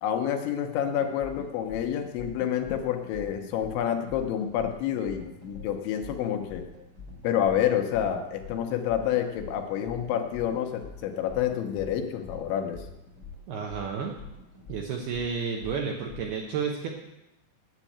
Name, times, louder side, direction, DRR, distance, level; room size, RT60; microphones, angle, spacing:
voice 1, 0.0-6.7 7.2-12.9, left 9 dB, 75° left, 5 dB, 3.0 m, -28 dB
sound 1, 0.7-14.8, equal, 30° right, 1.4 m, -52 dB
sound 2, 1.2-1.4 1.7-1.8 2.2-2.3 2.6-2.8 3.1-3.3 3.6-3.8 4.1-4.2 4.6-4.7 5.0-5.2 5.5-5.7 6.0-6.2 6.5-6.6 7.0-7.1 7.4-7.6 7.9-8.1 8.4-8.6 8.9-9.0 9.4-9.5 9.8-10.0 10.3-10.5 10.8-11.0 11.3-11.4 11.8-11.9 12.2-12.4 12.7-12.9 13.2-13.4 13.7-13.8 14.2-14.3 14.6-14.8 15.1-15.3 15.6-15.8 16.1-16.2, left 6 dB, 60° left, 1.3 m, -43 dB
voice 2, 13.5-14.1 14.7-16.9, right 6 dB, 75° right, 2 dB, 2.3 m, -31 dB
9.2 x 8.2 x 8.5 m, 0.90 s
omnidirectional pair, 5.7 m